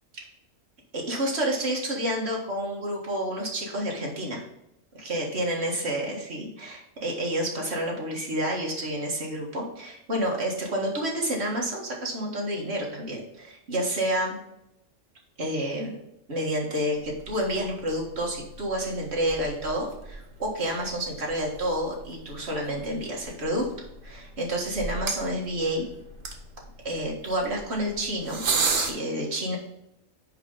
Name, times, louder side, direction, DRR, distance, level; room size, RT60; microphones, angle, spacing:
voice 1, 0.9-4.4 4.9-14.4 15.4-15.9 16.3-23.7 24.0-25.9 26.8-29.6, right 1 dB, 55° right, -2 dB, 2.0 m, -29 dB
sound 1, 17.0-28.9, right 4 dB, 85° right, 1.5 m, -36 dB
7.2 x 5.0 x 3.9 m, 0.83 s
omnidirectional pair, 1.3 m